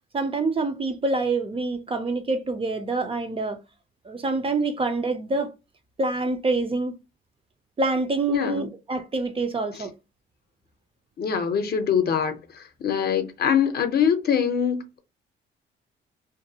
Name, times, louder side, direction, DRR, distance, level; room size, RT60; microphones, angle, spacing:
voice 1, 0.1-3.6 4.1-5.5 6.0-6.9 7.8-9.9, right 3 dB, 25° right, 0.4 m, -26 dB
voice 2, 8.3-8.7 9.7-9.9 11.2-15.0, left 7 dB, 55° left, 0.6 m, -24 dB
2.5 x 2.3 x 2.7 m
cardioid pair, 90°, 20 cm